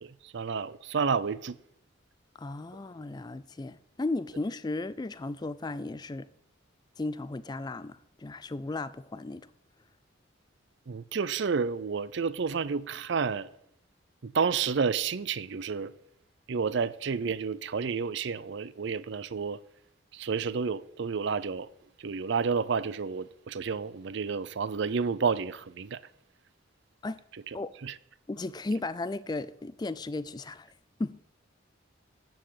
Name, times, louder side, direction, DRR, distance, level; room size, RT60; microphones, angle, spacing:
voice 1, 0.0-1.6 10.9-13.5 14.2-15.9 16.5-19.6 20.1-21.7 22.0-26.0 27.5-27.6 27.8-27.9, right 5 dB, 60° right, 0.5 m, -30 dB
voice 2, 2.4-6.3 7.0-9.5 27.0-27.2 27.5-27.7 28.3-30.7 31.0-31.2, left 2 dB, 20° left, 0.4 m, -35 dB
13.5 x 4.7 x 8.9 m
head